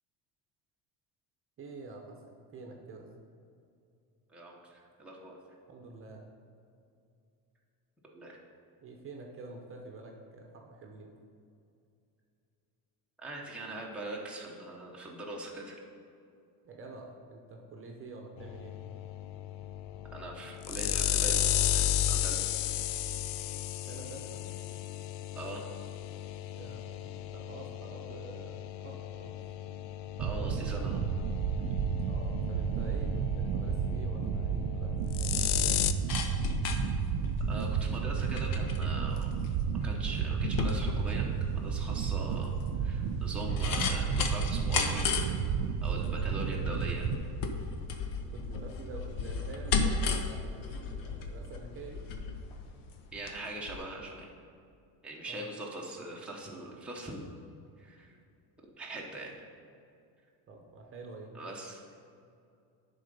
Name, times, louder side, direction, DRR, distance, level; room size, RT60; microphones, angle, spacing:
voice 1, 1.6-3.1 5.7-6.3 8.8-11.1 16.6-18.8 23.9-24.4 26.6-29.4 31.8-35.9 46.0-46.5 48.2-52.0 55.2-55.5 60.5-61.4, right 3 dB, 30° right, 1 dB, 0.9 m, -47 dB
voice 2, 4.3-5.4 8.0-8.4 13.2-15.8 20.1-21.4 21.7-22.5 25.3-25.6 30.2-31.0 37.5-39.3 39.8-41.3 41.5-42.5 42.8-45.2 45.8-47.1 53.1-54.3 55.0-57.3 57.8-58.1 58.8-59.3 61.3-61.8, right 2 dB, 5° right, -3 dB, 0.9 m, -41 dB
sound 1, 18.4-35.9, left 11 dB, 75° left, 0.5 m, -34 dB
sound 2, 30.2-47.2, right 7 dB, 50° right, 0.5 m, -32 dB
sound 3, 35.9-53.4 53.7-53.8, left 4 dB, 55° left, 0.9 m, -35 dB
10.5 x 3.9 x 5.4 m, 2.5 s
cardioid pair, 140°, 41 cm